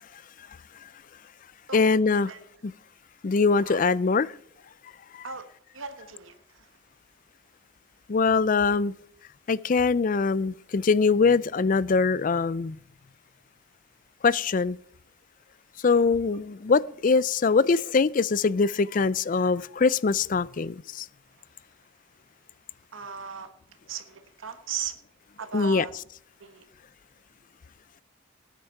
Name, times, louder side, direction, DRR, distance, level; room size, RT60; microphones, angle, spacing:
voice 1, 1.7-2.3 2.6-2.7 3.2-4.3 5.1-5.2 8.1-8.9 9.5-12.8 14.2-14.8 15.8-21.1 25.5-25.9, left 4 dB, 40° left, 0.4 m, -23 dB
voice 2, 5.7-6.7 22.9-23.5 23.9-24.9 25.4-25.9 26.4-26.6, right 7 dB, 75° right, 1.2 m, -37 dB
18.5 x 8.4 x 4.6 m
head